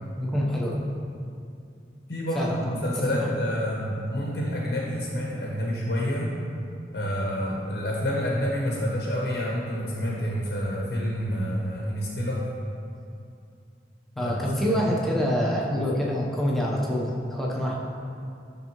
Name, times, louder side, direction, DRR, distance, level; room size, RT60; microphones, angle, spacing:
voice 1, 0.2-0.8 2.3-3.3 14.2-17.7, equal, ahead, -4 dB, 0.7 m, -26 dB
voice 2, 2.1-6.3 6.9-12.5 14.2-15.0, equal, 55° left, -3 dB, 0.8 m, -28 dB
10.5 x 3.5 x 2.9 m, 2.5 s
head